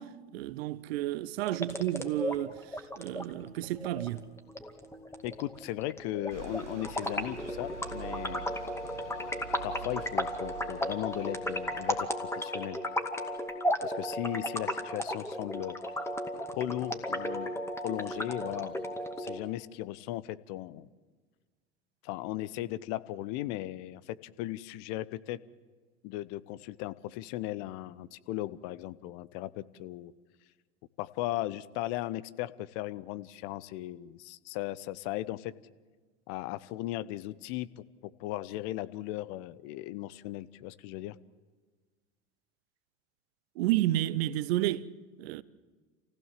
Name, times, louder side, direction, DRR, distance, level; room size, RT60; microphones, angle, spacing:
voice 1, 0.0-2.5 3.0-4.2 43.6-44.9 45.2-45.4, right 15 dB, 60° right, 0.9 m, -31 dB
sound 1, 1.4-19.4, left 1 dB, 10° left, 2.3 m, -35 dB
voice 2, 5.2-8.5 9.6-12.8 13.8-15.8 16.5-17.5 17.8-18.8 19.2-20.9 22.0-25.4 26.0-30.1 31.0-35.5 36.3-41.2, left 16 dB, 55° left, 0.9 m, -37 dB
Bus, 6.3-12.1, right 8 dB, 90° right, 0.8 m, -46 dB
27.5 x 16.0 x 7.6 m
figure-of-eight pair, 75°, 34 cm